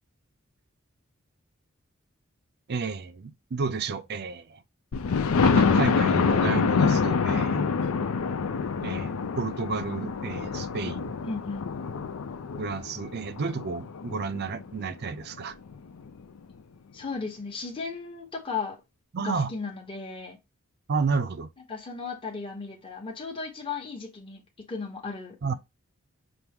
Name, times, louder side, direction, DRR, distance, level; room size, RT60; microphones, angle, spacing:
voice 1, 2.7-4.6 5.4-7.7 8.8-11.1 12.6-15.6 19.1-19.5 20.9-21.5 25.4-25.5, right 4 dB, 50° right, 0.5 m, -31 dB
Thunder, 4.9-14.6 15.2-15.3 15.7-15.8 16.1-16.2, left 5 dB, 90° left, 0.5 m, -26 dB
voice 2, 11.2-11.7 16.9-18.8 19.2-20.4 21.7-24.4 24.7-25.5, left 4 dB, 25° left, 1.0 m, -35 dB
5.9 x 2.0 x 3.5 m
head